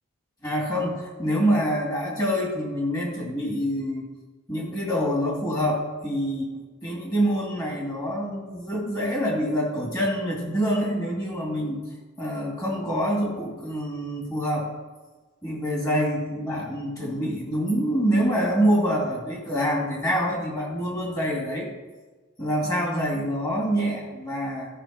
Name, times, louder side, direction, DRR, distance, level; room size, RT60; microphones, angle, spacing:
voice 1, 0.4-4.0 4.5-6.5 6.8-11.8 12.2-14.7 15.4-21.7 22.4-24.7, equal, 20° left, -3 dB, 2.4 m, -26 dB
13.0 x 4.8 x 5.8 m, 1.3 s
head